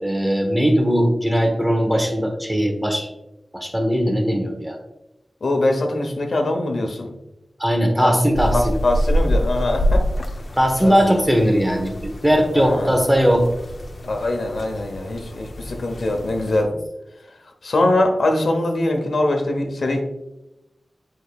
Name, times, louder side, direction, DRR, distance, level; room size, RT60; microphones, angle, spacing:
voice 1, 0.0-3.1 3.5-4.8 7.6-8.8 10.5-13.5, equal, 10° right, 3 dB, 1.1 m, -19 dB
voice 2, 5.4-7.1 8.0-8.2 8.5-10.0 10.8-10.9 12.5-12.9 14.0-16.7 17.6-20.0, left 2 dB, 80° left, 3 dB, 1.0 m, -22 dB
sound 1, 8.3-16.6, equal, 60° left, 0.8 m, -26 dB
8.5 x 4.8 x 2.4 m, 0.92 s
wide cardioid pair, 100°, 0 cm